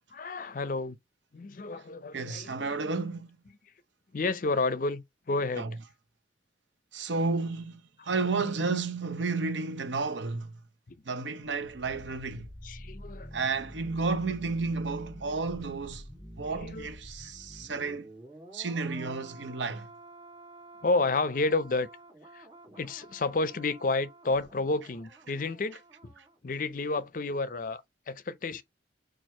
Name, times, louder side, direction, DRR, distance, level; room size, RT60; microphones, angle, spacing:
voice 1, 0.1-1.0 1.3-2.8 4.1-5.7 8.0-8.8 11.9-12.2 12.6-13.6 16.5-16.9 20.8-21.9 22.3-22.5 22.8-26.1 26.4-28.6, left 3 dB, 50° left, 0.5 m, -31 dB
voice 2, 2.1-3.3 5.6-5.7 6.9-10.5 11.1-12.5 13.3-16.0 16.4-18.1 18.5-19.9, right 4 dB, 85° right, 0.7 m, -32 dB
sound 1, 11.4-26.3 26.6-26.8, right 1 dB, 25° right, 2.1 m, -49 dB
4.5 x 2.5 x 4.3 m
head